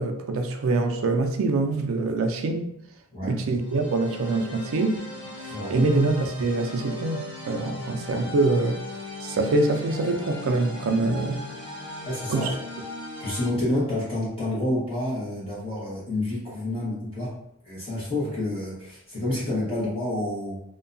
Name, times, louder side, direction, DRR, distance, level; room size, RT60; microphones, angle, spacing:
voice 1, 0.0-2.7 3.2-5.0 5.2-8.8 9.2-11.5 12.3-12.5, right 3 dB, 65° right, 0.3 m, -25 dB
sound 1, 3.6-13.5, left 2 dB, 5° right, 1.0 m, -38 dB
voice 2, 12.1-12.5 13.2-17.4 17.6-20.6, left 1 dB, 25° left, 1.0 m, -28 dB
2.6 x 2.2 x 2.5 m
head